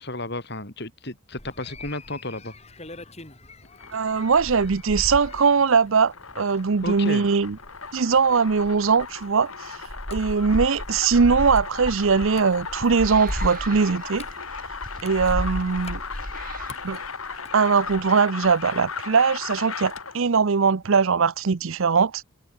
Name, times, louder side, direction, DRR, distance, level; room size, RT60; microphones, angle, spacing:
voice 1, 0.0-2.5 6.8-7.2, left 2 dB, 50° left, 4.6 m, -33 dB
sound 1, 1.4-18.1 18.4-18.9, equal, 30° left, 4.2 m, -36 dB
sound 2, 3.6-20.3, left 5 dB, 80° left, 5.1 m, -37 dB
voice 2, 3.9-7.6 7.9-9.5 10.1-14.3 15.0-16.0 16.8-17.0 17.5-22.2, right 5 dB, 70° right, 0.6 m, -21 dB
sound 3, 11.3-17.7, right 6 dB, 40° right, 4.9 m, -45 dB
head